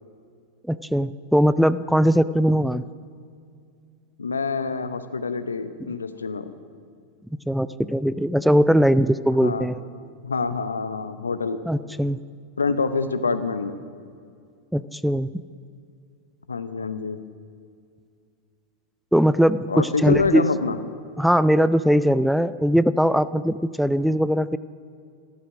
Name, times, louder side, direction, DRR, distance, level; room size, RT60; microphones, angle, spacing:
voice 1, 0.7-2.8 7.5-9.8 11.7-12.2 14.7-15.4 19.1-20.5 21.2-24.6, equal, ahead, 16 dB, 0.3 m, -20 dB
voice 2, 4.2-6.5 9.4-9.7 10.2-11.6 12.6-13.8 16.5-17.2 19.7-20.8, left 4 dB, 75° left, 12 dB, 0.8 m, -26 dB
14.5 x 13.0 x 6.3 m, 2.3 s
figure-of-eight pair, 90°, 0 cm